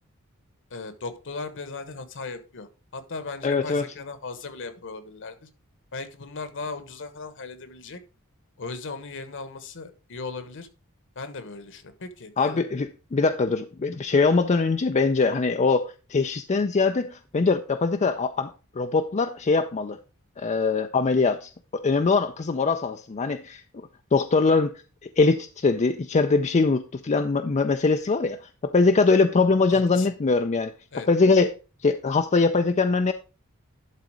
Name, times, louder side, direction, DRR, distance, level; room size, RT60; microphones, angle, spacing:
voice 1, 0.7-5.5 5.9-8.0 8.6-10.7 11.1-12.7 29.7-30.1 30.9-31.1, left 3 dB, 60° left, 1.2 m, -37 dB
voice 2, 3.4-3.9 12.4-18.5 18.8-20.0 20.4-23.6 24.1-24.7 25.0-30.7 31.1-31.5 31.8-33.1, left 4 dB, 30° left, 0.4 m, -22 dB
11.5 x 4.1 x 4.8 m
head